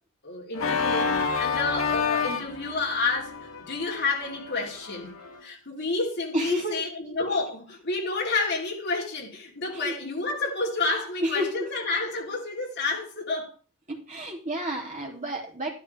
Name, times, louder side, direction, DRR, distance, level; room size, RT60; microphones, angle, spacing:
voice 1, 0.2-5.1 5.4-13.5, left 3 dB, 55° left, 3.8 m, -30 dB
Organ, 0.5-5.4, left 5 dB, 85° left, 1.7 m, -29 dB
voice 2, 6.3-6.8 9.7-9.9 11.2-11.6 14.1-15.7, right 1 dB, 35° right, 3.1 m, -30 dB
12.5 x 12.0 x 3.6 m
head